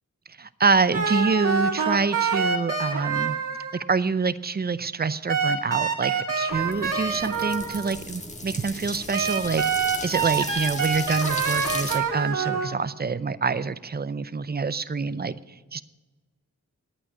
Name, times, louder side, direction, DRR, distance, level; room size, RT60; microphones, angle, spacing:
voice 1, 0.4-3.4 3.7-15.3 15.7-15.8, right 4 dB, 30° right, 15 dB, 0.6 m, -26 dB
sound 1, 0.9-3.8 5.3-8.0 9.1-12.7, right 5 dB, 80° right, 1.9 m, -26 dB
sound 2, 6.5-12.0, left 1 dB, 20° left, 1.6 m, -36 dB
11.0 x 8.8 x 8.4 m, 1.2 s
wide cardioid pair, 70°, 32 cm